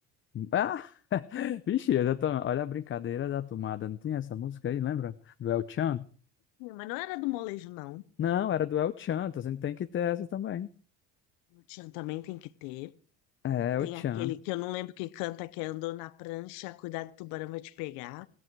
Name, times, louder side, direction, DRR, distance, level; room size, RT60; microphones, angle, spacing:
voice 1, 0.3-6.0 8.2-10.7 13.4-14.3, left 10 dB, 35° left, 0.7 m, -31 dB
voice 2, 6.6-8.0 11.5-12.9 13.8-18.3, left 19 dB, 80° left, 0.9 m, -37 dB
15.5 x 14.0 x 4.7 m
supercardioid pair, 100°, 33 cm